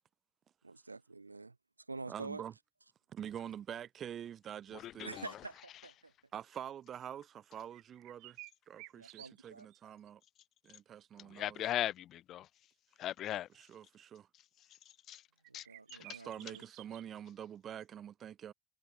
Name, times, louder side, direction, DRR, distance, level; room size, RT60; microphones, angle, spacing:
voice 1, 0.6-1.6 1.9-2.4 5.0-6.1 8.9-9.7 15.5-16.6, right 3 dB, 90° right, 0.7 m, -47 dB
voice 2, 2.1-2.5 3.1-5.1 6.3-8.4 8.7-10.2 10.6-11.7 13.5-14.3 16.0-18.5, right 9 dB, 40° right, 2.5 m, -46 dB
sound 1, 7.7-9.8 10.1-10.2 15.4-17.0, right 29 dB, 55° right, 3.5 m, -53 dB
voice 3, 11.4-12.4 13.0-13.5 15.1-15.2 15.5-15.6, left 12 dB, 45° left, 0.4 m, -37 dB
figure-of-eight pair, 70°, 0 cm